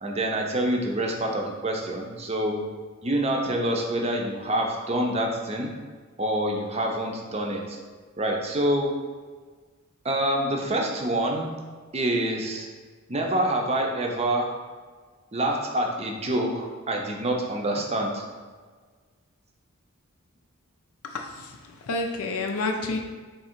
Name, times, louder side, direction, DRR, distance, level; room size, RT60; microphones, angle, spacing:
voice 1, 0.0-2.6 3.0-5.7 6.2-7.8 8.2-9.0 10.0-11.5 11.9-12.7 13.1-14.6 15.3-18.2, right 1 dB, 30° right, 1 dB, 0.5 m, -26 dB
voice 2, 21.0-23.0, left 3 dB, 80° left, 3 dB, 0.4 m, -30 dB
3.6 x 2.9 x 4.3 m, 1.5 s
head